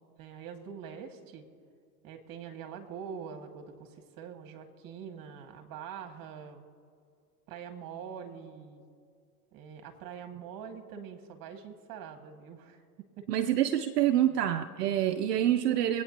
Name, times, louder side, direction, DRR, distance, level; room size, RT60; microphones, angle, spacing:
voice 1, 0.2-1.4 2.0-6.6 7.5-8.8 9.5-13.2 14.3-14.5, right 7 dB, 45° right, 5 dB, 2.1 m, -44 dB
voice 2, 13.3-16.0, right 11 dB, 85° right, 8 dB, 0.8 m, -26 dB
25.0 x 9.3 x 2.9 m, 2.2 s
hypercardioid pair, 90°, 47 cm